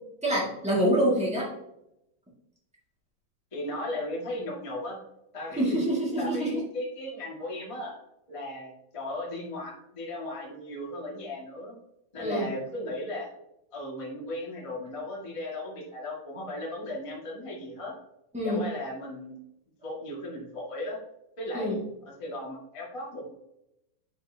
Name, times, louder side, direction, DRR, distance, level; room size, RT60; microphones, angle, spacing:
voice 1, 0.2-1.5 5.6-6.5 12.2-12.5 18.3-18.6 21.5-21.8, right 1 dB, 10° right, -6 dB, 0.4 m, -26 dB
voice 2, 3.5-5.0 5.3-5.8 6.2-8.0 8.3-11.8 12.1-13.3 13.7-17.9 18.4-19.4 19.8-21.0 21.4-21.7 22.2-23.3, left 1 dB, 20° left, -3 dB, 0.8 m, -36 dB
9.1 x 5.5 x 2.8 m, 0.83 s
omnidirectional pair, 4.1 m